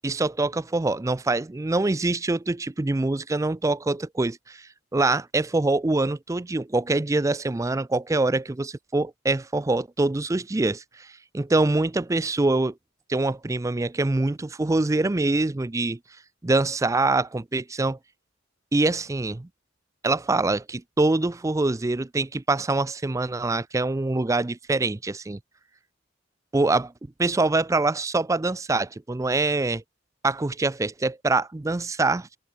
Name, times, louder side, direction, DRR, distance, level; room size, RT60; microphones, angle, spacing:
voice 1, 0.0-12.7 13.1-16.0 16.4-18.0 18.7-19.5 20.0-25.4 26.5-26.9 27.2-29.8 30.2-32.4, right 2 dB, 15° right, 0.4 m, -24 dB
head